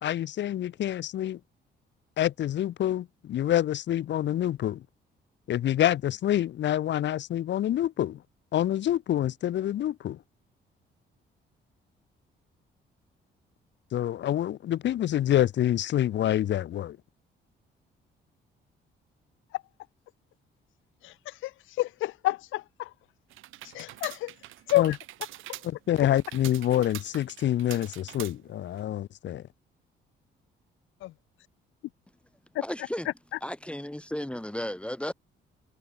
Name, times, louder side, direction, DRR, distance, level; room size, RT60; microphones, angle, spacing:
voice 1, 0.0-1.4 2.2-4.8 5.5-8.2 8.5-10.2 13.9-17.0 24.7-24.9 25.6-29.4, left 12 dB, 65° left, 0.9 m, -27 dB
voice 2, 21.8-22.9 23.7-24.3 24.7-25.0 31.0-31.1, left 17 dB, 85° left, 0.6 m, -28 dB
sound 1, 23.3-28.8, right 15 dB, 90° right, 2.5 m, -44 dB
voice 3, 32.6-33.1 33.4-35.1, left 1 dB, 5° left, 1.9 m, -34 dB
cardioid pair, 90°, 20 cm